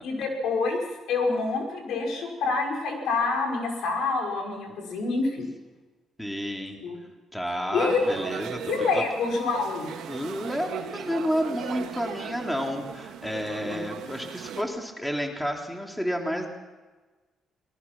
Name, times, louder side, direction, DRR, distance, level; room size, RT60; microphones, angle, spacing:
voice 1, 0.0-5.5 6.8-7.0 7.7-8.0 8.7-9.9 13.6-14.1, left 4 dB, 80° left, 2 dB, 5.6 m, -27 dB
voice 2, 6.2-6.8 7.3-9.0 10.1-16.5, equal, 5° left, 2 dB, 3.2 m, -30 dB
sound 1, 7.8-14.6, right 8 dB, 85° right, 2.0 m, -38 dB
23.5 x 20.0 x 6.1 m, 1.3 s
cardioid pair, 90°, 0 cm